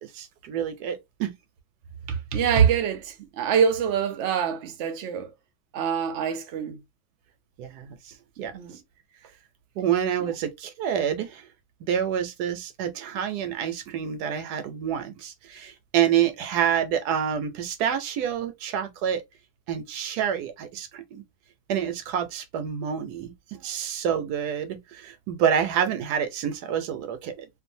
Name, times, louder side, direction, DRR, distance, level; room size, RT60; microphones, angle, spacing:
voice 1, 0.0-1.3 7.6-8.5 9.8-11.5 11.8-19.2 19.7-21.2 21.7-27.5, right 9 dB, 80° right, 1.2 m, -28 dB
voice 2, 2.1-5.3 5.7-6.8 8.4-8.8 10.2-10.3, right 7 dB, 60° right, 0.8 m, -25 dB
2.6 x 2.4 x 2.6 m
omnidirectional pair, 1.7 m